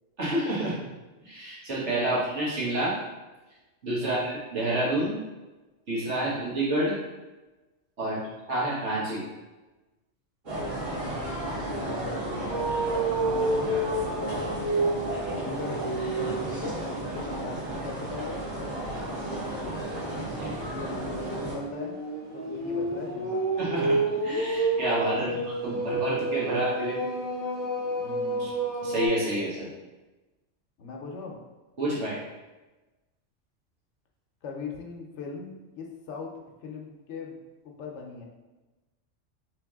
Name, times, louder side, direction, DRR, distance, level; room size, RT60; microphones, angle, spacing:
voice 1, 0.2-0.8 1.2-2.9 3.8-5.2 5.9-7.0 8.0-8.2 8.5-9.2 13.2-13.4 20.4-20.5 23.6-27.1 28.4-28.5 28.8-29.7 31.8-32.2, right 1 dB, 70° right, -6 dB, 1.6 m, -29 dB
voice 2, 10.5-12.7 13.2-14.9 15.3-16.8 17.1-19.8 20.0-22.0 22.3-23.4 25.2-25.4 28.0-28.5 30.8-31.4 34.4-36.3 36.6-37.4 37.6-38.3, left 4 dB, 75° left, 1 dB, 0.9 m, -40 dB
sound 1, 10.5-21.5, right 1 dB, 85° right, 1.8 m, -34 dB
sound 2, 12.5-16.6 17.1-17.4 19.8-29.1, right 2 dB, 5° left, 1.1 m, -29 dB
3.3 x 3.2 x 3.5 m, 1.1 s
omnidirectional pair, 1.3 m